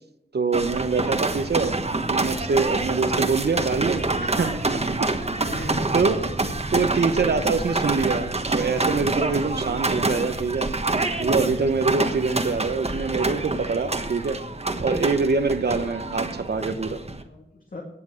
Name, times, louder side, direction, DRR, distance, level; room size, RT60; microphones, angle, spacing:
voice 1, 0.3-1.8 2.1-4.8 5.5-6.2 6.7-10.7 11.2-14.4 14.8-17.0, right 4 dB, 65° right, 8 dB, 0.9 m, -25 dB
sound 1, 0.5-17.2, right 2 dB, 35° right, 1.3 m, -27 dB
voice 2, 5.4-5.9 16.6-17.8, left 2 dB, 50° left, -1 dB, 2.2 m, -39 dB
18.0 x 7.2 x 6.4 m, 0.82 s
wide cardioid pair, 70°, 18 cm